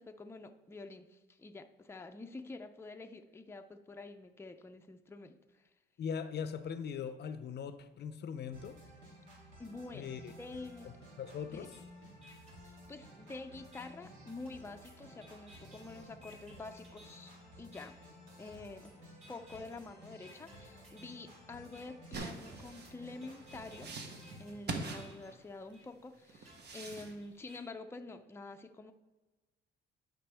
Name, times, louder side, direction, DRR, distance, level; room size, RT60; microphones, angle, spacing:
voice 1, 0.0-5.4 9.6-10.9 11.5-11.7 12.6-18.0 18.4-23.9 24.4-28.9, left 3 dB, 10° left, 6 dB, 0.5 m, -48 dB
voice 2, 6.0-8.8 9.9-10.3 10.8-11.7, left 7 dB, 60° left, 12 dB, 0.6 m, -40 dB
sound 1, 8.5-24.5, equal, 85° right, 2.9 m, -55 dB
sound 2, 11.7-11.8 12.2-13.3 13.7-13.9 14.5-17.3 17.7-17.9 18.5-18.9 19.2-19.8 20.2-21.2 21.7-21.8 22.5-25.3 25.7-25.8 26.5-27.6, equal, 35° right, 2.9 m, -59 dB
sound 3, 22.1-25.7 26.3-27.1, right 3 dB, 55° right, 1.1 m, -43 dB
11.5 x 5.2 x 3.4 m, 1.2 s
cardioid pair, 90°, 20 cm